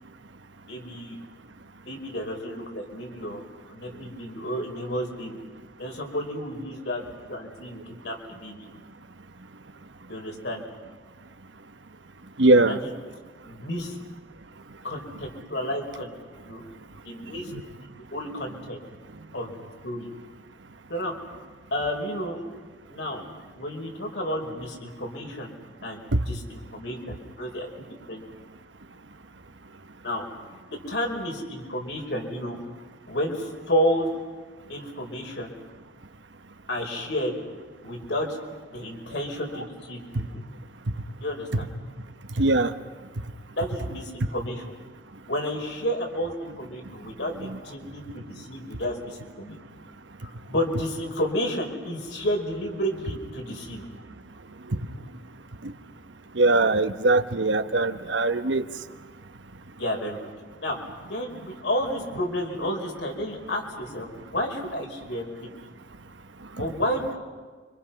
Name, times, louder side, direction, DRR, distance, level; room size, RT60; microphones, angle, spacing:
voice 1, 0.7-1.2 1.8-3.4 3.7-5.4 5.8-7.0 7.3-8.6 10.1-10.6 12.7-12.9 13.4-14.0 14.8-16.1 16.4-16.6 17.0-17.5 18.1-18.8 19.3-19.5 19.8-20.1 20.9-21.1 21.7-22.4 22.9-23.2 23.5-25.5 25.8-26.0 26.2-27.7 28.1-28.2 30.0-30.2 30.7-32.6 33.1-34.1 34.7-35.5 36.7-37.3 37.8-38.4 38.7-40.2 41.2-41.7 43.6-44.6 45.3-49.6 50.2-53.8 59.8-60.2 60.6-60.8 61.1-65.2 66.6-67.2, equal, 75° left, 1 dB, 5.0 m, -31 dB
voice 2, 12.4-12.8 17.5-17.6 26.1-26.2 42.4-42.7 47.4-47.5 56.4-58.6, right 2 dB, 90° right, 10 dB, 1.1 m, -21 dB
30.0 x 25.5 x 5.9 m, 1.4 s
head